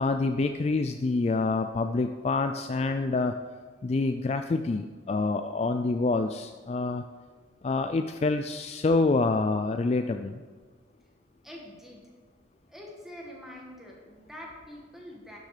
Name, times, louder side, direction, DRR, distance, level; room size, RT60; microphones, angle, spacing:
voice 1, 0.0-3.3 3.8-7.0 7.6-10.4, left 3 dB, 35° left, 7 dB, 0.3 m, -27 dB
voice 2, 11.4-12.0 12.7-15.4, left 1 dB, ahead, -2 dB, 1.8 m, -45 dB
12.0 x 6.6 x 4.9 m, 1.5 s
head